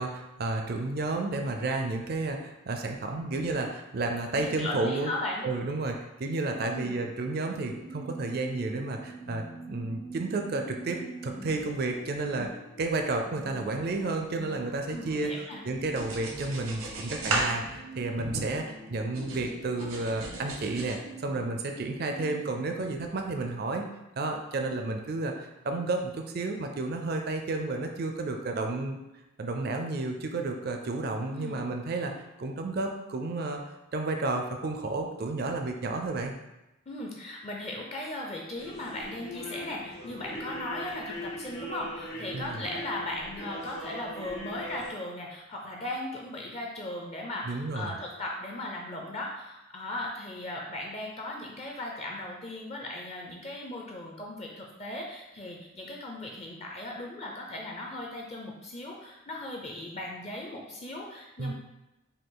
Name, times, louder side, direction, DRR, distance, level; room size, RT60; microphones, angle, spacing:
voice 1, 0.0-5.1 5.4-12.5 12.8-23.9 24.2-29.0 29.4-32.1 32.4-33.6 33.9-36.3 42.3-42.7 47.4-47.9 61.4-61.5, right 2 dB, 50° right, 4 dB, 0.4 m, -31 dB
voice 2, 4.3-5.5 6.7-7.0 14.9-15.6 31.3-31.6 36.9-61.5, left 1 dB, 30° left, -1 dB, 0.5 m, -37 dB
sound 1, 6.3-22.6, right 2 dB, 65° left, 1.5 m, -46 dB
sound 2, 15.9-18.8 19.1-21.0, right 2 dB, 85° right, 0.9 m, -34 dB
sound 3, 38.6-44.9, equal, 85° left, 1.3 m, -40 dB
5.3 x 2.4 x 3.8 m, 0.97 s
head